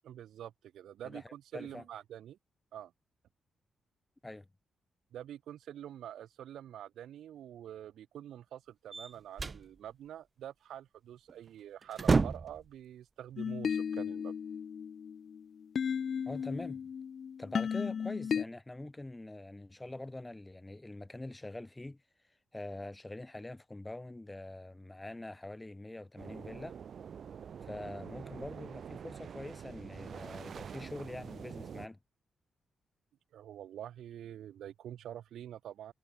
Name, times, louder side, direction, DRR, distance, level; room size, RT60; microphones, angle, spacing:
voice 1, 0.0-2.4 2.7-2.9 5.1-14.3 33.3-35.9, right 11 dB, 85° right, 2.2 m, -46 dB
voice 2, 1.0-1.8 4.2-4.5 16.3-16.9 17.4-22.0 22.5-26.8 27.6-32.0, left 2 dB, 10° left, 1.6 m, -44 dB
sound 1, 8.9-9.7 11.3-11.5 11.8-12.7, right 4 dB, 30° right, 0.4 m, -30 dB
sound 2, 13.4-18.4, left 7 dB, 50° left, 0.8 m, -35 dB
sound 3, 26.2-31.9, right 7 dB, 50° right, 6.1 m, -46 dB
wide cardioid pair, 140°, 0 cm